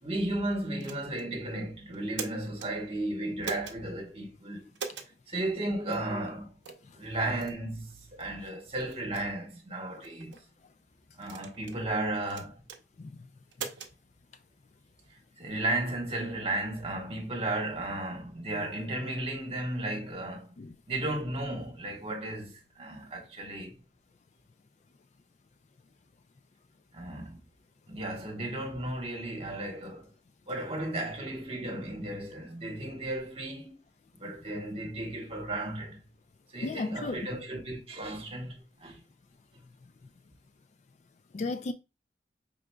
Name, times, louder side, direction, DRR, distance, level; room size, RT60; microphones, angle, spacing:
voice 1, 0.0-4.7 5.3-6.6 7.0-10.4 11.1-12.6 15.1-20.5 20.9-23.8 26.9-27.4 27.9-30.1 30.5-33.7 34.2-36.0 36.5-39.0, right 1 dB, 30° right, 1.1 m, -34 dB
sound 1, 0.8-1.3 1.9-2.7 3.4-3.8 4.8-5.1 5.9-6.1 6.6-6.9 7.4-7.6 8.2-8.3 8.9-9.2 10.0-10.4 11.2-11.8 12.3-12.8 13.5-13.9, right 6 dB, 80° right, 0.7 m, -40 dB
voice 2, 36.6-37.3 41.3-41.7, left 3 dB, 40° left, 0.3 m, -35 dB
4.9 x 3.7 x 2.2 m
head